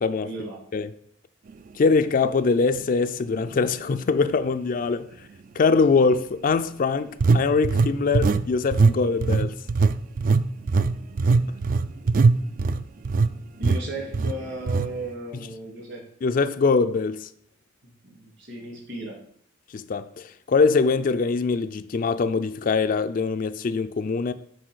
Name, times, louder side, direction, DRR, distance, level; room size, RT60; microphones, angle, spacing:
voice 1, 0.2-0.6 13.6-16.0 18.1-19.2, right 2 dB, 60° right, 2.7 m, -35 dB
voice 2, 1.7-5.1 5.5-9.6 16.2-17.3 19.7-24.3, left 4 dB, 40° left, 0.3 m, -23 dB
sound 1, 2.7-2.9 3.5-3.6 7.2-8.5 8.7-9.0 9.2-13.3 13.6-13.8 14.1-14.3 14.7-14.9, right 4 dB, 40° right, 0.3 m, -20 dB
6.3 x 5.0 x 6.2 m
head